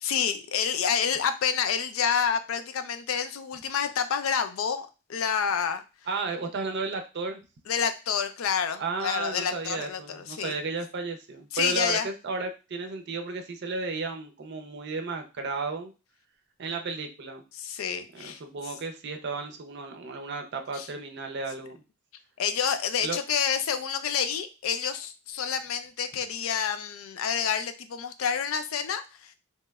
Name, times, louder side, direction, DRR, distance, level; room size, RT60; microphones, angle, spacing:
voice 1, 0.0-5.8 7.7-10.5 11.5-12.1 17.5-18.4 20.7-20.9 22.4-29.3, left 7 dB, 80° left, 9 dB, 0.4 m, -28 dB
voice 2, 6.1-7.4 8.8-15.9 16.6-17.4 18.1-21.8 23.0-23.2, right 4 dB, 55° right, 5 dB, 0.5 m, -33 dB
3.1 x 2.9 x 2.3 m, 0.30 s
head